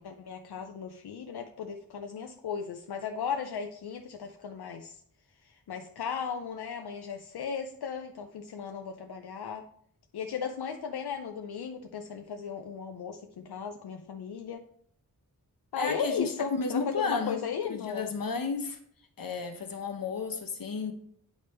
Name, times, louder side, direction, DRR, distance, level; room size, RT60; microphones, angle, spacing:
voice 1, 0.0-5.0 5.4-9.6 10.1-14.6 15.7-16.8 17.1-18.0, left 6 dB, 85° left, 5 dB, 0.6 m, -36 dB
voice 2, 15.8-17.4 17.6-18.8 19.2-20.9, left 4 dB, 60° left, 5 dB, 1.1 m, -32 dB
9.3 x 3.4 x 4.3 m, 0.64 s
wide cardioid pair, 105°, 37 cm